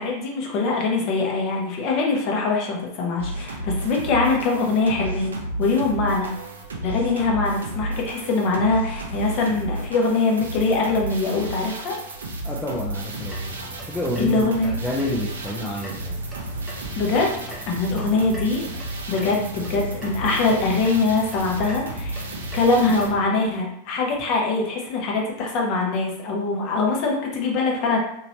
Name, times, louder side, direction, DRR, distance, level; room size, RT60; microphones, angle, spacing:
voice 1, 0.0-6.3 6.8-12.0 14.2-14.8 17.0-17.3 17.7-18.6 19.1-22.2 22.5-28.0, left 3 dB, 40° left, -1 dB, 0.8 m, -23 dB
sound 1, 3.2-23.1, right 1 dB, 70° right, 0.6 m, -32 dB
voice 2, 12.4-13.6 13.8-16.2, left 1 dB, 15° left, -2 dB, 0.5 m, -29 dB
sound 2, 13.1-23.2, right 1 dB, 10° right, 0.9 m, -40 dB
3.0 x 2.8 x 2.9 m, 0.77 s
figure-of-eight pair, 90°, 0 cm